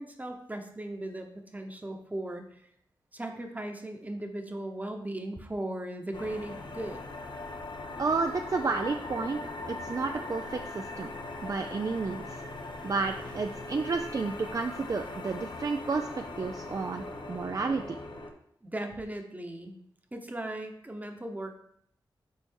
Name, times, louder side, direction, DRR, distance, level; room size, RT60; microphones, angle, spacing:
voice 1, 0.0-2.7 3.1-7.0 18.6-19.8 20.1-21.6, right 1 dB, 20° right, 4 dB, 1.0 m, -37 dB
sound 1, 6.1-18.3, left 2 dB, 65° left, 0.9 m, -40 dB
voice 2, 8.0-11.1 11.4-12.4 12.8-16.1 16.4-18.0, right 4 dB, 40° right, 5 dB, 0.4 m, -31 dB
5.5 x 4.0 x 4.6 m, 0.69 s
cardioid pair, 55°, 9 cm